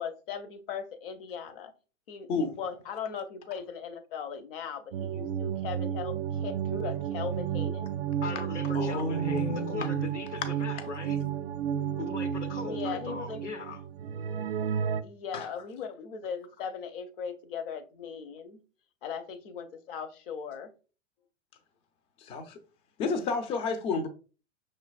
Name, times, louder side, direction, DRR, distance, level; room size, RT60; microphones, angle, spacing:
voice 1, 0.0-1.7 2.1-7.9 12.6-13.4 14.6-14.7 15.0-18.6 19.0-20.7, left 6 dB, 45° left, 0.8 m, -38 dB
sound 1, 4.9-15.0, right 9 dB, 55° right, 0.4 m, -32 dB
voice 2, 8.2-11.2 12.0-13.8, left 5 dB, 70° left, 0.9 m, -39 dB
voice 3, 8.7-10.0 15.3-15.5 22.2-22.6 23.0-24.1, left 3 dB, 15° left, 0.4 m, -31 dB
6.0 x 3.2 x 2.4 m
figure-of-eight pair, 95°, 38 cm